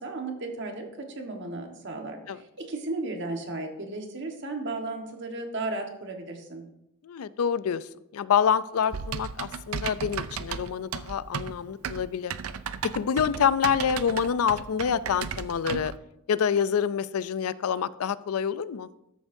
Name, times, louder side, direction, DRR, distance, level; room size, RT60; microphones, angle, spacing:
voice 1, 0.0-6.7, right 2 dB, 55° right, 3 dB, 1.4 m, -35 dB
voice 2, 7.0-12.3 13.0-15.9 16.3-18.9, left 7 dB, 85° left, 17 dB, 0.4 m, -27 dB
Typing, 8.9-16.0, right 6 dB, 80° right, 0.5 m, -35 dB
13.5 x 7.1 x 2.7 m, 0.87 s
head